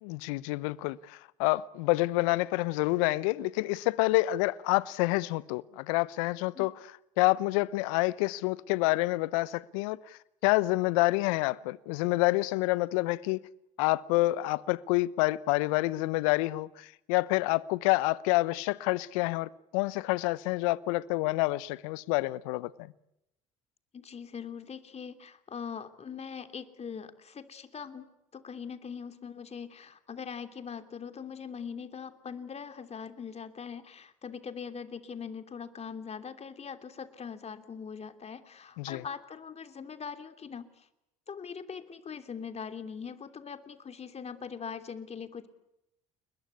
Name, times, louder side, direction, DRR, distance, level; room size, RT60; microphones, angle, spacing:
voice 1, 0.0-6.7 7.2-13.4 13.8-22.7 38.8-39.0, left 20 dB, 75° left, 0.9 m, -28 dB
voice 2, 23.9-40.9 41.3-45.5, left 6 dB, 35° left, 3.0 m, -42 dB
30.0 x 21.0 x 8.4 m
hypercardioid pair, 60°, 18 cm